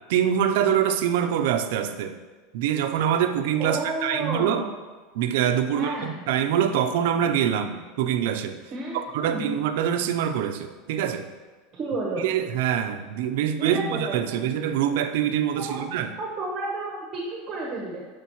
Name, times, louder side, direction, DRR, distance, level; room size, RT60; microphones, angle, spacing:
voice 1, 0.1-2.1 2.5-4.6 5.1-8.6 8.9-11.3 12.2-16.1, right 9 dB, 70° right, 8 dB, 0.6 m, -24 dB
voice 2, 3.6-4.7 5.7-6.2 8.7-9.5 11.7-12.3 13.6-14.4 15.7-15.8 16.2-18.1, right 2 dB, 30° right, -2 dB, 1.2 m, -31 dB
13.0 x 5.2 x 3.1 m, 1.4 s
supercardioid pair, 155°, 0 cm